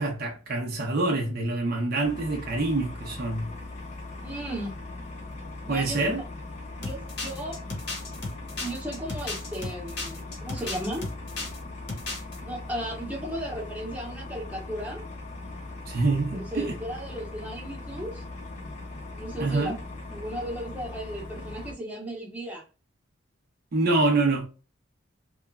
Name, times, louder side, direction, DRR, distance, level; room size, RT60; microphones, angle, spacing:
voice 1, 0.0-3.5 5.7-6.2 15.9-16.8 19.4-19.8 23.7-24.5, right 2 dB, 45° right, 0.5 m, -26 dB
sound 1, 2.0-21.7, left 2 dB, 35° left, 0.6 m, -40 dB
voice 2, 4.2-4.8 5.6-6.2 6.8-7.6 8.6-11.1 12.4-15.0 16.3-18.3 19.1-19.8 20.1-22.7, equal, 5° right, 0.8 m, -35 dB
sound 2, 6.8-11.6 11.9-12.4, left 3 dB, 55° left, 0.9 m, -34 dB
2.9 x 2.1 x 2.3 m
head